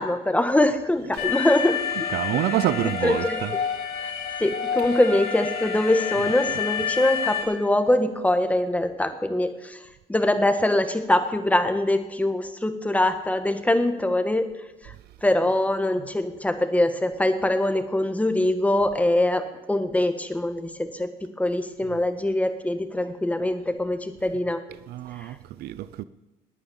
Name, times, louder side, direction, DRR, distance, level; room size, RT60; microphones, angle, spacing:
voice 1, 0.0-2.1 2.8-3.4 4.0-4.1 4.4-9.8 10.1-14.5 14.8-14.9 15.2-24.6, left 1 dB, 10° left, 1.6 m, -23 dB
Alarm, 1.2-7.4, left 7 dB, 75° left, 3.5 m, -29 dB
voice 2, 2.1-3.5 24.9-26.0, right 13 dB, 70° right, 0.6 m, -27 dB
19.5 x 9.2 x 7.3 m
cardioid pair, 110°, 17 cm